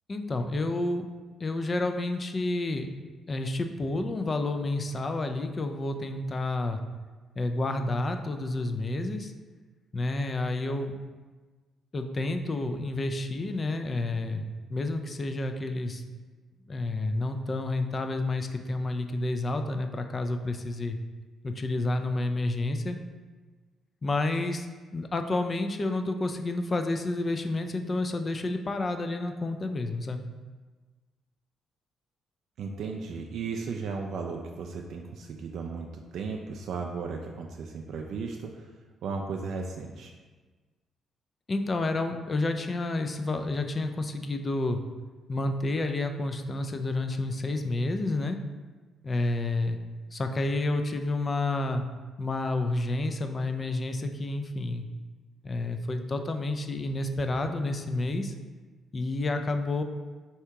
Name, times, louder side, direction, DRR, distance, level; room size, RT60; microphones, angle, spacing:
voice 1, 0.1-1.1 1.4-2.9 3.3-6.8 7.4-9.3 9.9-10.9 11.9-16.0 16.7-21.0 21.4-23.0 24.0-24.7 24.9-30.2 41.5-44.8 45.3-48.4 49.0-49.8 50.1-51.8 52.2-54.9 55.4-58.3 58.9-59.8, left 2 dB, 35° left, 6 dB, 0.3 m, -30 dB
voice 2, 32.6-35.9 36.1-38.7 39.0-40.1, right 4 dB, 70° right, 2 dB, 0.3 m, -35 dB
3.4 x 2.8 x 4.6 m, 1.3 s
cardioid pair, 90°, 0 cm